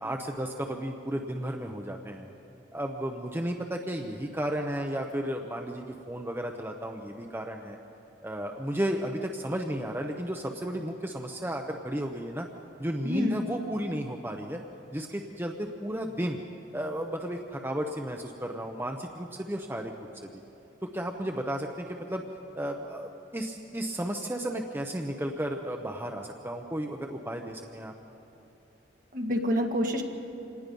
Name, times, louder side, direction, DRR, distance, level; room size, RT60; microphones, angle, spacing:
voice 1, 0.0-2.3 2.7-7.8 8.2-12.5 12.8-14.6 14.9-16.4 16.7-19.9 20.8-22.2 22.6-27.9, right 1 dB, 10° right, 2 dB, 0.7 m, -33 dB
voice 2, 13.0-13.4 29.1-30.0, left 1 dB, 45° right, 3 dB, 1.6 m, -27 dB
26.0 x 19.5 x 5.3 m, 2.9 s
head